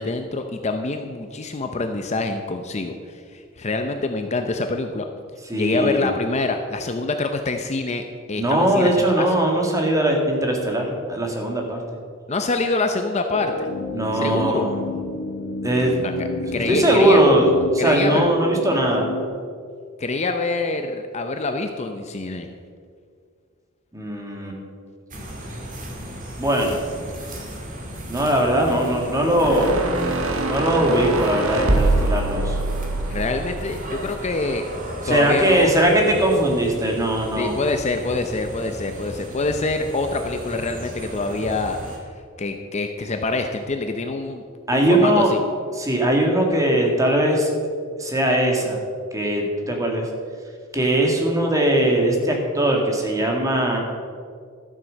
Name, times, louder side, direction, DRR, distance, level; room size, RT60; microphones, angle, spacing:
voice 1, 0.0-5.1 5.5-8.0 8.3-9.3 12.3-13.7 14.1-14.6 16.0-17.2 17.8-18.3 20.0-22.5 33.1-34.6 35.1-35.7 37.4-41.8 42.4-44.4 44.7-45.4, left 3 dB, 30° left, 6 dB, 0.6 m, -25 dB
voice 2, 5.5-6.1 8.4-11.8 13.9-14.7 15.6-15.9 16.7-17.5 17.7-19.1 23.9-24.6 26.4-26.8 28.1-29.8 30.5-32.6 35.0-37.5 44.7-45.3 45.7-47.5 48.0-48.8 49.1-50.1 50.7-53.8, right 1 dB, 15° right, 1 dB, 1.9 m, -20 dB
sound 1, 13.3-19.3, left 3 dB, 80° left, 1.1 m, -30 dB
sound 2, 25.1-42.0, equal, 40° right, 2.3 m, -35 dB
sound 3, 29.4-34.6, right 2 dB, 70° right, 1.4 m, -24 dB
12.5 x 7.5 x 6.4 m, 2.1 s
head